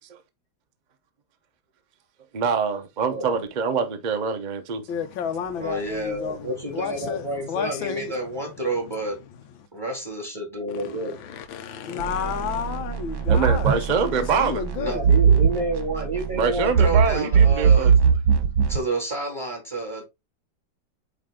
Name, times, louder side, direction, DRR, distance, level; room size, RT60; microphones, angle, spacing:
voice 1, 2.3-4.8 13.3-14.6 16.3-17.9, right 5 dB, 60° right, 0.4 m, -25 dB
voice 2, 4.9-8.5 9.2-9.7 10.7-15.1, left 8 dB, 80° left, 1.7 m, -32 dB
voice 3, 5.5-9.2 9.7-11.2 14.8-18.0 18.7-20.0, right 2 dB, 10° right, 2.4 m, -29 dB
sound 1, 12.0-18.8, right 6 dB, 80° right, 2.0 m, -21 dB
8.5 x 3.3 x 3.8 m
omnidirectional pair, 2.1 m